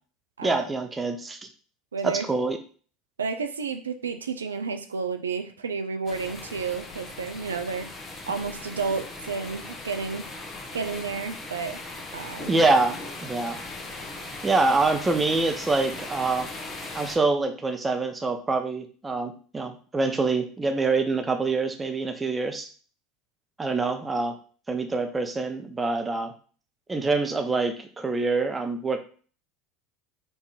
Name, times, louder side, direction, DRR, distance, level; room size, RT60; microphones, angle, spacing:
voice 1, 0.4-1.4 2.0-2.6 12.5-13.6 14.4-16.5 16.9-22.7 23.6-24.4 24.7-26.3 26.9-29.0, right 3 dB, 20° right, 6 dB, 0.8 m, -25 dB
voice 2, 1.9-2.3 3.2-10.3 10.7-11.8 12.1-12.5, right 5 dB, 90° right, 8 dB, 0.4 m, -31 dB
sound 1, 6.1-17.2, left 2 dB, 25° left, 1.0 m, -39 dB
4.6 x 2.7 x 4.1 m, 0.41 s
hypercardioid pair, 80°, 0 cm